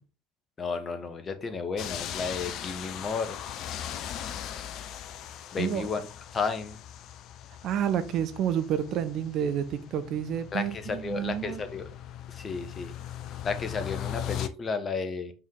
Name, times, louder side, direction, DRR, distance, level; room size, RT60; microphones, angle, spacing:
voice 1, 0.6-3.4 5.5-6.1 6.3-6.8 10.5-11.9 12.3-13.0 13.4-15.3, left 4 dB, 30° left, 1.2 m, -33 dB
sound 1, 1.8-14.5, left 10 dB, 50° left, 0.6 m, -39 dB
voice 2, 7.6-11.6, right 9 dB, 45° right, 0.7 m, -29 dB
5.6 x 4.7 x 3.8 m
figure-of-eight pair, 65°, 0 cm